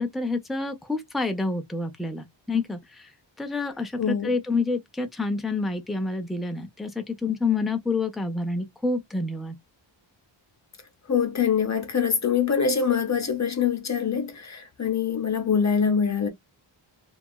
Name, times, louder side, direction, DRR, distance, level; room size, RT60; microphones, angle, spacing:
voice 1, 0.0-3.1 3.4-9.5, left 3 dB, ahead, 0.3 m, -28 dB
voice 2, 4.0-4.3 11.1-16.3, left 7 dB, 35° left, 0.7 m, -24 dB
2.8 x 2.3 x 2.2 m
wide cardioid pair, 170°, 48 cm